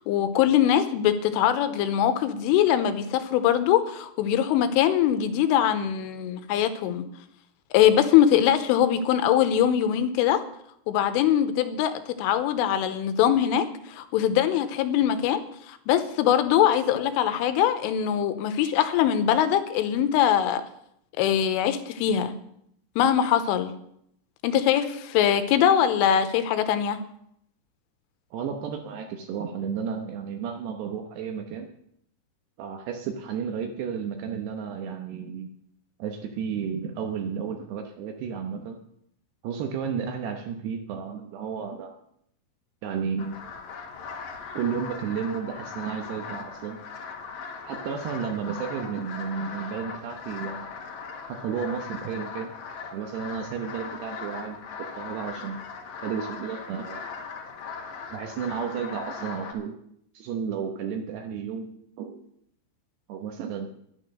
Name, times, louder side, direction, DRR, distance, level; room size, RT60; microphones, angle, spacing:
voice 1, 0.1-7.1 7.7-10.4 10.9-15.4 15.7-20.6 21.2-22.3 23.0-23.7 24.4-27.0, left 10 dB, 90° left, 10 dB, 3.4 m, -22 dB
voice 2, 28.3-31.7 32.6-35.5 36.0-38.8 39.4-42.0 42.8-43.4 44.5-46.8 47.6-50.7 51.3-52.5 52.9-54.6 54.9-55.6 56.0-57.0 58.1-59.7 60.1-62.2 63.1-63.7, right 7 dB, 75° right, 5 dB, 2.6 m, -32 dB
sound 1, 43.2-59.5, left 5 dB, 70° left, 1.8 m, -39 dB
11.0 x 10.5 x 6.5 m, 0.73 s
omnidirectional pair, 5.7 m